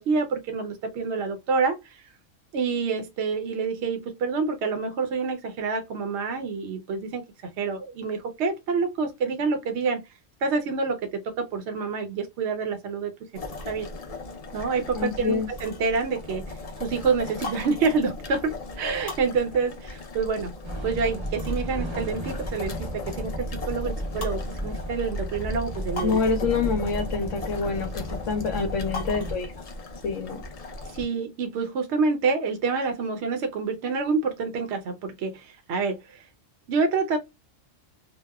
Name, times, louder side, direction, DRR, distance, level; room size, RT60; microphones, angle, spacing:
voice 1, 0.0-2.0 2.5-7.2 7.6-10.0 10.4-13.9 14.5-20.5 20.8-26.2 30.9-36.3 36.7-37.2, right 4 dB, 65° right, 0.8 m, -27 dB
sound 1, 13.3-31.0, left 3 dB, 50° left, 0.4 m, -38 dB
voice 2, 15.0-15.5 26.0-29.6 30.0-30.4, left 5 dB, 70° left, 0.9 m, -27 dB
sound 2, 20.6-29.3, equal, 30° right, 0.6 m, -33 dB
2.8 x 2.0 x 2.2 m
omnidirectional pair, 1.4 m